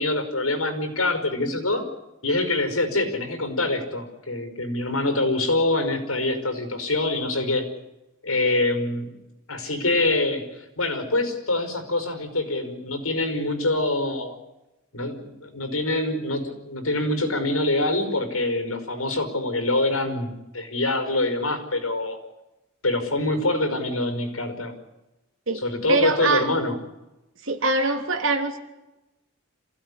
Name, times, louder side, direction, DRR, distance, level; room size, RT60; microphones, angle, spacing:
voice 1, 0.0-1.8 2.2-7.7 8.2-9.1 9.5-14.4 14.9-22.2 22.8-24.7 25.5-26.7, left 2 dB, 85° left, 8 dB, 5.2 m, -25 dB
voice 2, 25.9-26.5 27.4-28.6, right 3 dB, 65° right, 6 dB, 3.1 m, -23 dB
27.5 x 16.0 x 10.0 m, 0.99 s
head